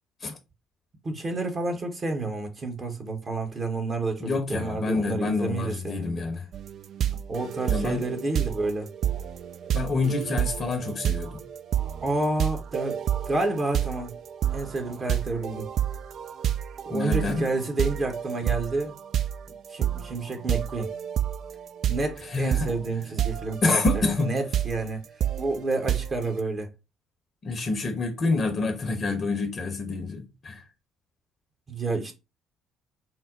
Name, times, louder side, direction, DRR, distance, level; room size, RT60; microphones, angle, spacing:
voice 1, 1.0-6.3 7.3-8.9 12.0-14.2 14.5-15.7 16.9-18.9 19.7-20.9 21.9-23.8 24.2-25.0 25.4-26.7 31.7-32.1, right 2 dB, 35° right, 0.9 m, -29 dB
voice 2, 4.2-6.5 7.7-8.2 9.7-11.4 16.9-17.5 22.2-22.7 23.6-24.4 27.4-30.6, left 3 dB, 40° left, 0.7 m, -27 dB
sound 1, 6.5-26.4, right 10 dB, 50° right, 0.3 m, -29 dB
4.4 x 2.1 x 3.8 m
figure-of-eight pair, 50°, 0 cm